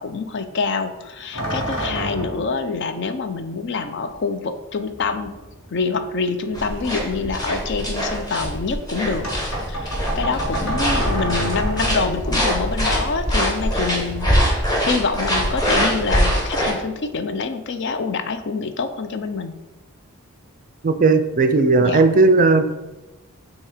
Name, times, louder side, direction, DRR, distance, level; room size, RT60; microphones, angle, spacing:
voice 1, 0.0-5.3 5.7-9.3 9.7-19.5 21.8-22.1, left 4 dB, 50° left, 9 dB, 0.5 m, -26 dB
sound 1, 1.3-2.6 4.1-4.2 4.9-6.1 6.5-8.0 9.2-12.2 14.3-15.2 15.5-16.0 16.4-17.4, right 1 dB, 80° left, 1.7 m, -30 dB
sound 2, 6.5-16.7, equal, 15° left, 1.3 m, -23 dB
voice 2, 20.8-22.9, right 3 dB, 35° right, 9 dB, 0.4 m, -16 dB
7.2 x 2.8 x 4.9 m, 1.0 s
head